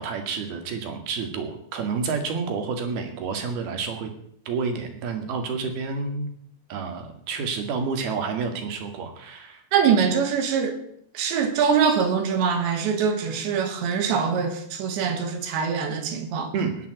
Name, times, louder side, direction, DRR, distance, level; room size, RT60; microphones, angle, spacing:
voice 1, 0.0-4.1 4.5-6.3 6.7-9.6 16.5-16.9, right 5 dB, 65° right, 3.8 m, -29 dB
voice 2, 9.7-10.8 11.2-16.5, right 6 dB, 90° right, 4.1 m, -23 dB
20.0 x 7.3 x 8.0 m
omnidirectional pair, 5.0 m